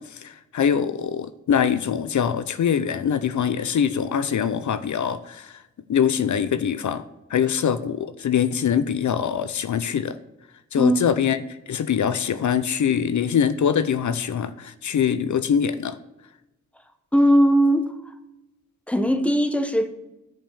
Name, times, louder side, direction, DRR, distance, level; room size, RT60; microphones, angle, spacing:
voice 1, 0.0-5.6 5.9-7.0 7.3-10.2 10.7-16.0, left 8 dB, 75° left, 0.6 m, -23 dB
voice 2, 10.8-11.1 17.1-17.9 18.9-19.9, equal, 5° left, 1.0 m, -19 dB
10.5 x 5.5 x 7.0 m
wide cardioid pair, 95°, 30 cm